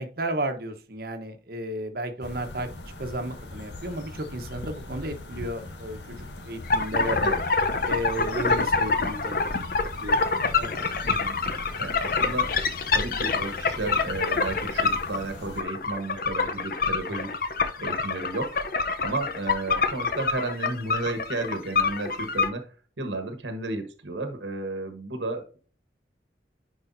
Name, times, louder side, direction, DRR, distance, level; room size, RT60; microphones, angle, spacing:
voice 1, 0.0-2.7 3.0-7.2 7.9-9.6 10.0-10.2 10.5-10.7, right 1 dB, 55° right, 7 dB, 1.1 m, -33 dB
sound 1, 2.2-15.6, left 2 dB, 70° left, 1.5 m, -40 dB
sound 2, 6.7-22.5, left 4 dB, 50° left, 0.7 m, -26 dB
voice 2, 11.0-11.4 11.8-12.5 12.9-17.4 17.8-18.6 19.0-22.7 23.0-25.6, right 2 dB, 85° right, 7 dB, 1.2 m, -33 dB
10.0 x 4.8 x 2.7 m, 0.39 s
head